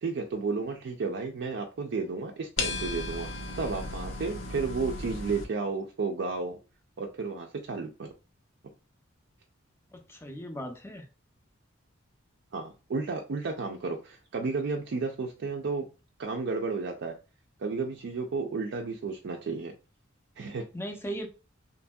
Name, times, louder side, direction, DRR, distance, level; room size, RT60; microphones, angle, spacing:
voice 1, 0.0-3.3 3.5-6.6 7.0-8.1 12.5-15.8 16.2-17.1 17.6-19.7 20.4-20.6, right 4 dB, 60° right, 0.4 m, -32 dB
sound 1, 2.6-5.4, left 3 dB, 70° left, 0.5 m, -35 dB
voice 2, 9.9-11.0 20.7-21.3, right 1 dB, 10° left, 0.4 m, -37 dB
2.8 x 2.6 x 2.2 m
head